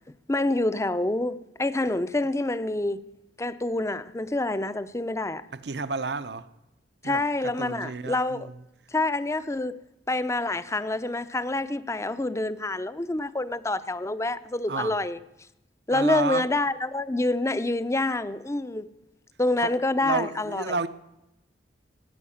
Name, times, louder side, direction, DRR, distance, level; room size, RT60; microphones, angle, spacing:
voice 1, 0.3-3.1 3.4-5.4 7.0-8.5 8.9-9.8 10.1-15.2 15.9-18.9 19.4-20.6, left 2 dB, 15° left, 0.6 m, -27 dB
voice 2, 5.5-6.5 7.0-8.6 14.7-15.0 15.9-16.5 19.6-19.7 20.0-20.9, right 4 dB, 65° right, 0.8 m, -31 dB
17.5 x 9.3 x 8.6 m
head